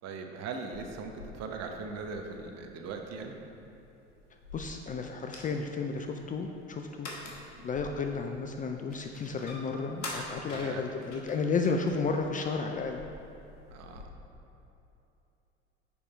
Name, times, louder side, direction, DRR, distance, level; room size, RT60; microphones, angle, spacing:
voice 1, 0.0-3.3 10.5-10.8 13.7-14.1, right 4 dB, 45° right, 4 dB, 0.9 m, -39 dB
sound 1, 0.7-14.1, left 2 dB, 85° left, 1.3 m, -47 dB
voice 2, 4.5-7.1 7.6-13.0, left 4 dB, 25° left, 4 dB, 0.4 m, -32 dB
7.1 x 5.1 x 4.3 m, 2.9 s
hypercardioid pair, 80°, 35 cm